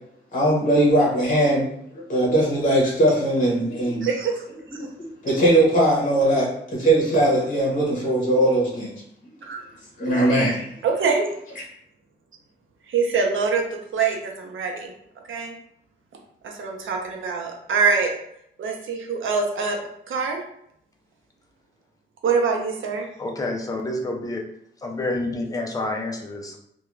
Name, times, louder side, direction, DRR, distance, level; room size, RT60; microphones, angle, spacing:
voice 1, 0.3-1.6 1.9-4.1 4.8-4.9 5.2-9.0 10.0-10.7, right 1 dB, 40° left, -4 dB, 0.8 m, -20 dB
voice 2, 4.0-4.4 9.4-9.6 10.8-11.2 12.9-13.6 13.9-14.9 15.3-15.5 16.4-18.1 18.6-19.8 20.1-20.4 22.2-23.0, right 5 dB, 85° right, 1 dB, 0.5 m, -24 dB
voice 3, 23.2-24.4 24.8-26.6, left 2 dB, 20° left, 1 dB, 0.3 m, -28 dB
2.4 x 2.2 x 3.0 m, 0.73 s
wide cardioid pair, 175°, 20 cm